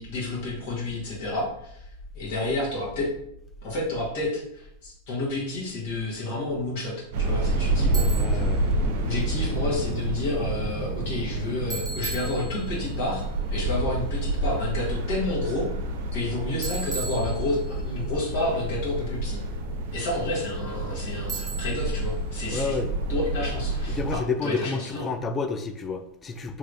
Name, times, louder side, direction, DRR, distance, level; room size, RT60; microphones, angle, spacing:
voice 1, 0.0-1.9 2.1-3.1 3.6-8.5 9.0-15.7 16.1-19.4 19.9-22.8 23.1-25.0, left 2 dB, 65° left, -5 dB, 1.4 m, -30 dB
sound 1, 7.1-24.2, right 2 dB, 60° right, 0.5 m, -28 dB
Bicycle, 7.9-8.5 11.7-12.9 16.6-17.9 21.3-22.0, right 4 dB, 5° right, 0.8 m, -36 dB
voice 2, 8.1-8.6 22.5-22.9 23.9-26.6, left 4 dB, 25° left, 8 dB, 0.4 m, -30 dB
3.3 x 2.9 x 2.6 m, 0.74 s
hypercardioid pair, 100°, 0 cm